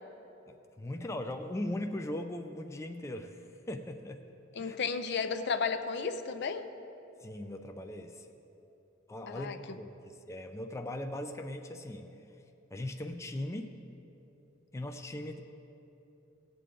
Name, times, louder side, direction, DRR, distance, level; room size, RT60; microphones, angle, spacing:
voice 1, 0.5-4.2 4.6-4.8 7.2-8.3 9.1-12.1 12.7-13.8 14.7-15.4, left 1 dB, 15° left, 5 dB, 0.4 m, -39 dB
voice 2, 4.6-6.6 9.3-9.6, left 5 dB, 60° left, 9 dB, 0.6 m, -33 dB
17.5 x 8.3 x 3.8 m, 3.0 s
head